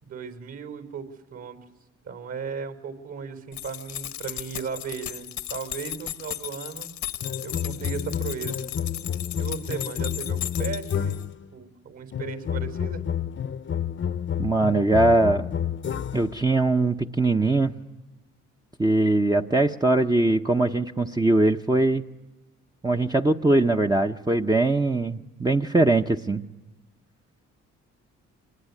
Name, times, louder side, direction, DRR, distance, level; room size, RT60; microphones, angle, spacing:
voice 1, 0.0-1.6 2.0-6.9 7.4-8.7 9.4-11.2 11.5-13.0, right 6 dB, 60° right, 8 dB, 4.3 m, -36 dB
sound 1, 3.5-11.3, left 11 dB, 70° left, 1.1 m, -36 dB
sound 2, 7.2-11.5 12.1-16.4, left 8 dB, 40° left, 0.8 m, -30 dB
voice 2, 14.4-15.5 16.1-17.7 18.8-22.0 22.8-26.4, right 2 dB, 15° right, 3 dB, 0.8 m, -21 dB
25.5 x 21.0 x 9.8 m, 1.1 s
cardioid pair, 90°, 30 cm